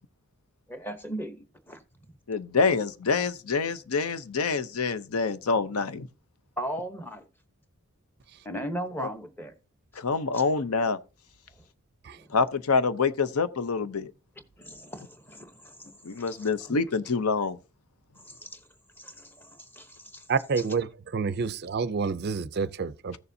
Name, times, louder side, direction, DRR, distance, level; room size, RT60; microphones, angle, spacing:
voice 1, 0.7-1.8 6.6-7.2 8.4-9.5 12.2-12.3 14.6-16.0 16.3-16.8 18.2-18.6 19.0-20.2, right 1 dB, 10° left, 0.9 m, -38 dB
voice 2, 2.3-6.1 9.0-9.1 10.0-11.0 12.3-14.1 16.0-17.6, left 4 dB, 90° left, 0.7 m, -26 dB
voice 3, 20.3-20.9 21.1-23.2, right 5 dB, 45° right, 0.4 m, -28 dB
15.0 x 6.9 x 2.7 m
head